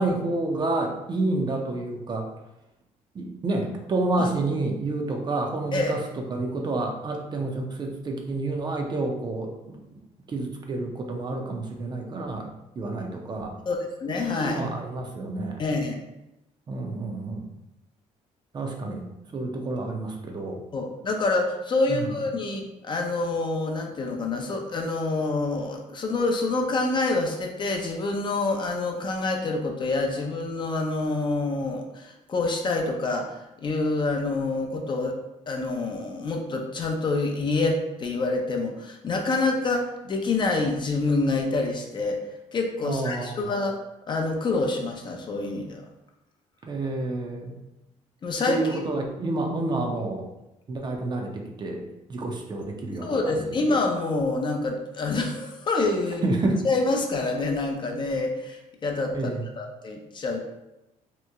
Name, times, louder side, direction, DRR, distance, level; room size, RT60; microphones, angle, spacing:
voice 1, 0.0-2.3 3.1-6.0 6.3-10.0 10.3-12.5 12.8-13.5 14.3-15.6 16.7-17.4 18.5-19.0 19.3-20.6 21.9-22.0 42.8-43.4 46.6-47.6 48.4-50.3 50.7-51.8 52.1-53.4 56.2-56.6 59.1-59.4, right 2 dB, 35° right, 2 dB, 0.5 m, -29 dB
voice 2, 13.7-14.7 15.6-16.0 20.7-35.2 35.5-42.2 42.5-43.7 44.1-45.8 48.2-48.8 53.0-56.2 56.6-59.3 59.6-60.4, left 3 dB, 35° left, 3 dB, 0.5 m, -27 dB
2.9 x 2.1 x 3.5 m, 0.90 s
cardioid pair, 100°, 13 cm